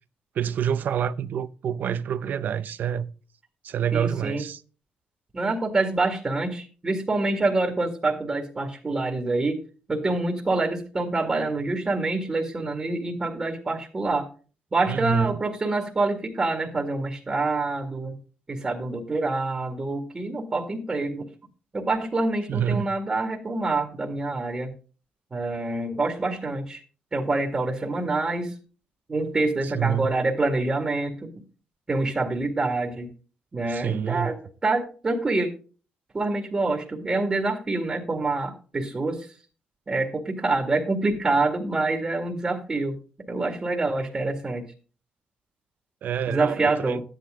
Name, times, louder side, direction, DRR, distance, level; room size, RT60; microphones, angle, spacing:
voice 1, 0.3-3.1 3.6-4.6 14.9-15.4 22.5-22.9 29.7-30.1 33.7-34.3 46.0-47.0, right 9 dB, 60° right, 0.7 m, -27 dB
voice 2, 3.9-4.4 5.3-9.6 9.9-14.3 14.7-18.1 18.5-21.3 21.7-24.7 25.3-26.8 27.1-28.6 29.1-31.1 31.9-33.1 33.5-34.3 34.6-35.5 36.1-39.4 39.9-42.9 43.3-44.6 46.3-47.0, right 2 dB, 25° right, 2.1 m, -26 dB
12.5 x 9.7 x 3.8 m
cardioid pair, 130°, 3 cm